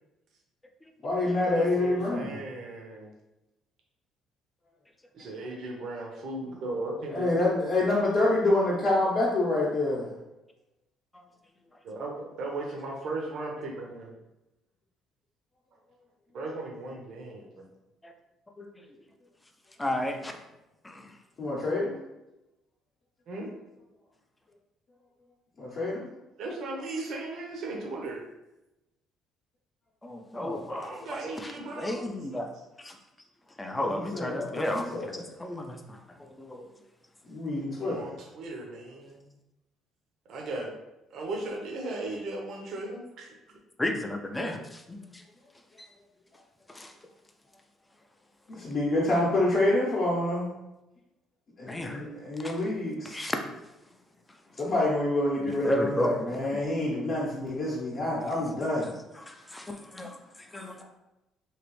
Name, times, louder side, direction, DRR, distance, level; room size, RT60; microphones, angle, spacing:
voice 1, 1.0-2.4 7.1-10.1 21.4-22.0 25.6-26.1 30.3-30.7 33.8-35.3 37.3-38.1 48.5-50.5 51.6-53.2 54.6-58.9 60.8-60.9, left 2 dB, 40° left, -6 dB, 0.7 m, -27 dB
voice 2, 1.5-3.1 5.1-7.3 11.8-14.2 16.3-17.6 23.3-23.5 26.4-28.2 30.7-32.1 37.8-39.2 40.3-40.7 41.1-43.3, right 2 dB, 55° right, 0 dB, 0.7 m, -37 dB
voice 3, 19.8-20.3 20.8-21.1 30.0-32.5 32.8-33.0 33.6-36.7 43.8-45.2 46.7-46.9 51.7-52.0 52.4-52.6 53.1-53.4 55.5-56.1 56.5-56.6 59.2-60.8, left 1 dB, 10° left, 5 dB, 0.4 m, -34 dB
3.1 x 2.9 x 3.0 m, 0.96 s
cardioid pair, 140°, 0 cm